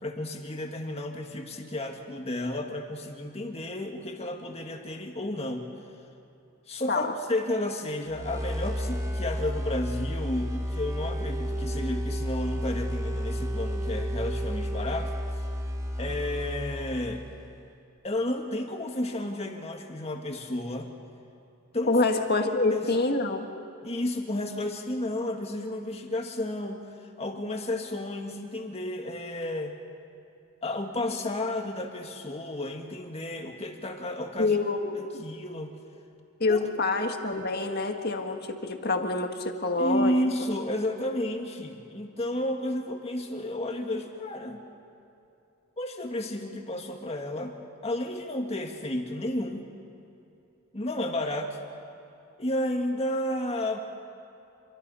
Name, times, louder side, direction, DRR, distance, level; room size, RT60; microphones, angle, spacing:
voice 1, 0.0-5.7 6.7-15.1 16.0-17.2 18.0-20.9 21.7-22.0 22.4-22.9 23.8-29.7 30.6-34.6 34.9-35.7 36.5-36.6 39.8-44.6 45.8-47.6 47.8-49.6 50.7-51.6 52.4-53.8, left 1 dB, 30° left, 3 dB, 1.9 m, -32 dB
sound 1, 8.1-17.6, equal, 15° right, 2.4 m, -32 dB
voice 2, 21.9-23.5 34.4-35.2 36.4-40.2, left 3 dB, 45° left, 5 dB, 1.7 m, -26 dB
28.0 x 23.5 x 5.6 m, 2.8 s
head